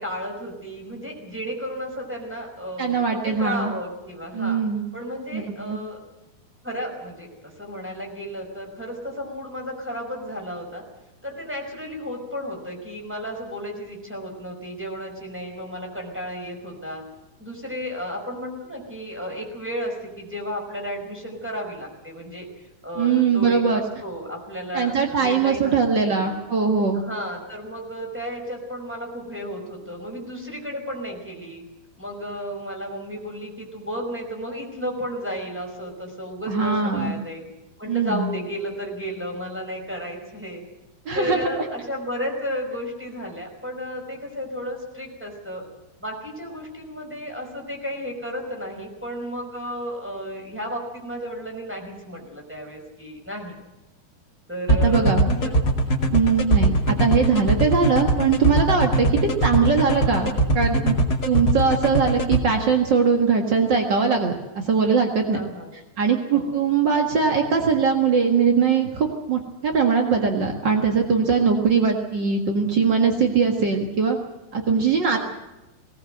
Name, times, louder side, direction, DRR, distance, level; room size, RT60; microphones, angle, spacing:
voice 1, 0.0-4.6 4.9-6.0 6.6-10.8 11.2-17.0 17.4-22.5 22.8-26.3 26.9-31.6 32.0-37.5 37.8-40.6 41.1-45.7 46.0-53.6 54.5-55.5 58.9-59.2 65.3-65.7 66.3-66.6 75.1-75.2, equal, 5° right, 1 dB, 4.8 m, -33 dB
voice 2, 2.8-3.7 4.3-4.8 5.3-5.8 23.0-23.8 24.7-27.0 36.5-37.1 37.9-38.3 41.0-41.4 54.7-55.3 56.1-60.9 61.3-65.4 66.0-74.2 74.5-75.2, right 5 dB, 60° right, 2 dB, 1.1 m, -21 dB
sound 1, 54.7-62.4, right 2 dB, 30° left, 2.0 m, -20 dB
20.0 x 19.0 x 8.0 m, 1.0 s
omnidirectional pair, 4.9 m